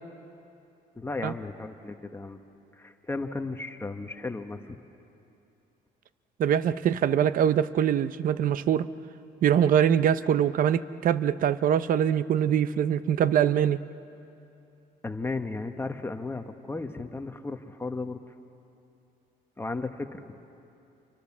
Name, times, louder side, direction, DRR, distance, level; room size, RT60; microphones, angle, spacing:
voice 1, 0.9-2.4 2.7-4.8 15.0-18.2 19.6-20.3, left 3 dB, 15° left, 6 dB, 1.4 m, -35 dB
voice 2, 6.4-8.9 9.4-13.8, right 9 dB, 55° right, 14 dB, 0.8 m, -23 dB
29.5 x 24.5 x 7.4 m, 2.7 s
cardioid pair, 110°, 17 cm